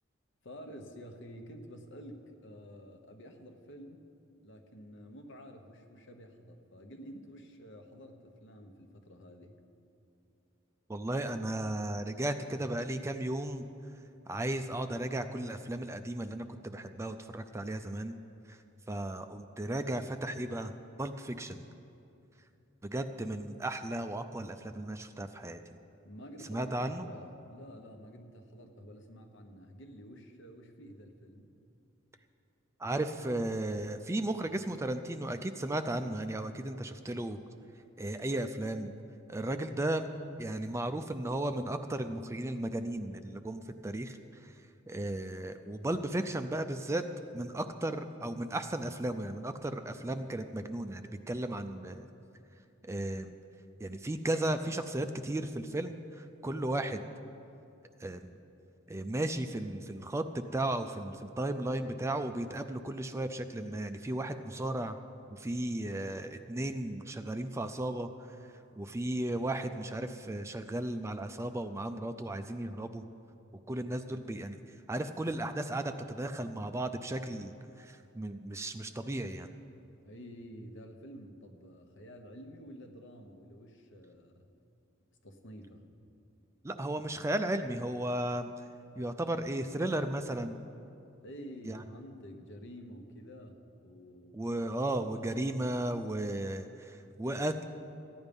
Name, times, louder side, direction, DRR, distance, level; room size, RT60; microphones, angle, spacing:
voice 1, 0.4-4.1 4.4-9.6 26.0-31.6 80.0-84.5 85.2-85.9 91.2-94.4, equal, 65° left, 5 dB, 1.1 m, -50 dB
voice 2, 10.9-13.7 14.3-18.2 18.5-18.6 18.9-20.7 21.0-21.6 22.8-25.6 26.5-27.1 32.8-37.4 38.0-38.9 39.3-40.0 40.4-47.1 47.3-52.1 52.8-53.4 53.8-57.1 58.0-58.4 58.9-65.0 65.3-68.4 68.8-73.1 73.7-74.6 74.9-79.5 86.6-88.5 89.0-90.6 91.6-91.8 94.3-97.6, right 1 dB, 15° right, 9 dB, 0.4 m, -35 dB
14.5 x 9.8 x 5.3 m, 2.7 s
head